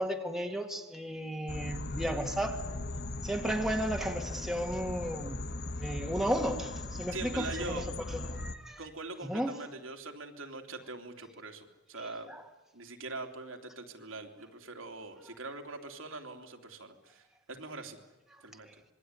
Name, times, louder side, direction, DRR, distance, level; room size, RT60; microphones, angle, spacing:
voice 1, 0.0-2.6 3.2-5.4 5.8-7.8 8.3-8.8 9.2-9.5 12.3-12.4, equal, ahead, 3 dB, 1.9 m, -33 dB
sound 1, 1.5-8.6, left 2 dB, 55° left, 1.3 m, -39 dB
voice 2, 7.1-7.9 8.8-12.3 12.7-18.0 18.4-18.7, right 3 dB, 85° right, 3 dB, 3.1 m, -43 dB
26.0 x 22.5 x 9.7 m, 1.0 s
head